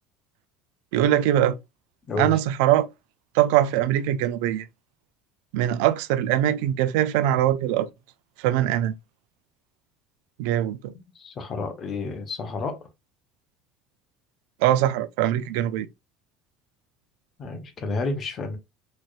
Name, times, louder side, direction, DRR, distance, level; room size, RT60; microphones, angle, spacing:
voice 1, 0.9-1.6 2.2-2.9 3.3-4.7 5.5-7.9 8.4-8.9 10.4-10.9 14.6-15.9, right 12 dB, 80° right, 0.4 m, -22 dB
voice 2, 11.1-12.8 17.4-18.6, left 3 dB, 30° left, 0.9 m, -30 dB
4.2 x 3.2 x 2.4 m
cardioid pair, 155°, 0 cm